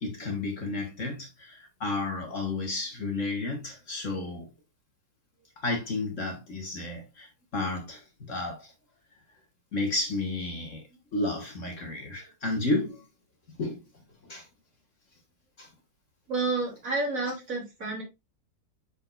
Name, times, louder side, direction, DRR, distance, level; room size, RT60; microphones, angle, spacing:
voice 1, 0.0-4.5 5.6-8.7 9.7-10.8 11.1-13.1 13.6-13.8 14.2-14.5 15.6-15.7, left 2 dB, 45° left, 1.9 m, -32 dB
voice 2, 16.3-18.0, right 3 dB, 50° right, 3.2 m, -30 dB
6.6 x 5.8 x 2.5 m
omnidirectional pair, 1.9 m